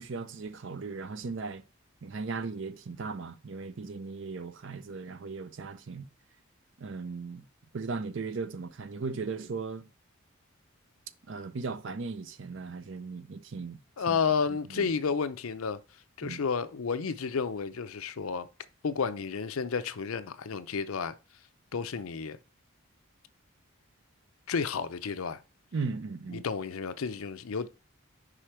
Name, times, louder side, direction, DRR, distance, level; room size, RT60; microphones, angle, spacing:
voice 1, 0.0-1.6 2.0-6.1 6.8-7.4 7.7-9.9 11.3-13.8 14.1-14.2 14.7-14.9 16.2-16.4 25.7-26.4, right 4 dB, 60° right, 0.5 m, -37 dB
voice 2, 14.0-15.8 16.2-18.5 18.8-21.1 21.7-22.4 24.5-25.4 26.3-27.7, left 5 dB, 80° left, 0.5 m, -31 dB
5.0 x 4.9 x 4.4 m
head